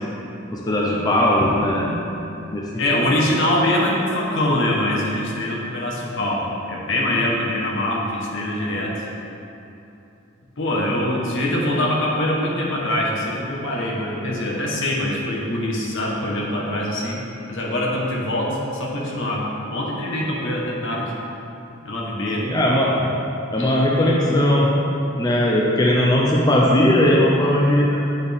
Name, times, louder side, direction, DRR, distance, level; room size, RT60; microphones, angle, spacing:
voice 1, 0.5-2.1 2.5-3.1 22.4-23.1 23.5-24.8 25.2-28.0, left 1 dB, 20° left, -3 dB, 0.5 m, -18 dB
voice 2, 2.8-9.0 10.6-21.1 21.8-22.5 23.6-23.7, left 1 dB, 65° left, -3 dB, 1.1 m, -23 dB
9.0 x 4.2 x 3.5 m, 2.8 s
head